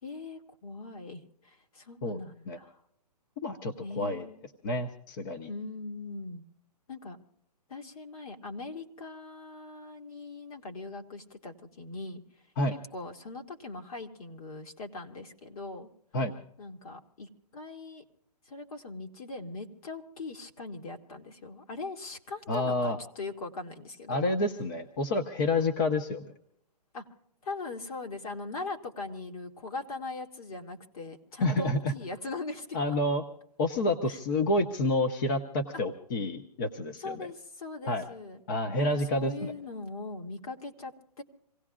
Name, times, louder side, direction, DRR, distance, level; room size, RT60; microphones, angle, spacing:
voice 1, 0.0-2.8 3.8-4.4 5.5-6.4 6.9-7.2 7.7-12.2 12.9-15.9 16.6-18.0 18.5-24.2 26.9-27.0 27.4-33.0 34.1-34.2 35.7-35.8 37.0-38.4 38.8-41.2, left 3 dB, 60° left, 4 dB, 2.2 m, -41 dB
voice 2, 3.4-4.3 4.6-5.5 12.6-12.7 16.1-16.3 22.5-23.0 24.1-26.3 31.4-31.9 32.7-33.2 33.6-37.3 37.9-38.0 38.5-39.5, left 2 dB, 30° left, 6 dB, 0.8 m, -29 dB
27.0 x 17.5 x 2.4 m, 0.74 s
hypercardioid pair, 165°, 21 cm